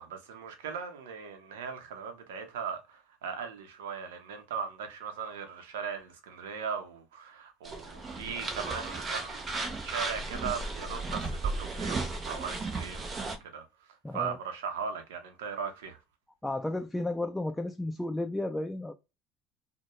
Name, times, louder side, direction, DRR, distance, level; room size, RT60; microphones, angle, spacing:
voice 1, 0.0-9.5 9.8-13.6 14.1-16.0, right 6 dB, 80° right, 0.7 m, -38 dB
sound 1, 7.6-13.4, right 3 dB, 35° right, 0.7 m, -35 dB
voice 2, 14.0-14.4 16.4-18.9, left 2 dB, 10° left, 0.4 m, -33 dB
2.1 x 2.1 x 2.9 m
hypercardioid pair, 70°, 0 cm